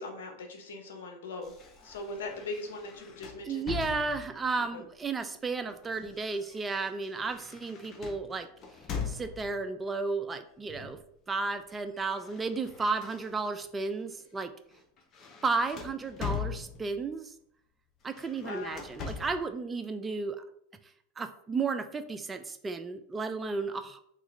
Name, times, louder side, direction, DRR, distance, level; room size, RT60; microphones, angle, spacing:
voice 1, 0.0-1.6 1.8-3.7 4.6-4.8 18.4-18.9, left 2 dB, 80° left, 3 dB, 0.7 m, -40 dB
sound 1, 1.4-4.5 5.5-9.7 10.7-11.1 11.4-13.7 14.1-14.3 14.7-17.1 18.0-19.5, left 6 dB, 40° left, 0.7 m, -42 dB
voice 2, 3.4-8.5 9.1-11.0 11.3-14.5 15.4-17.3 18.0-20.4 21.2-24.0, right 4 dB, 20° right, 8 dB, 0.4 m, -33 dB
3.6 x 2.4 x 3.1 m, 0.70 s
hypercardioid pair, 105°, 0 cm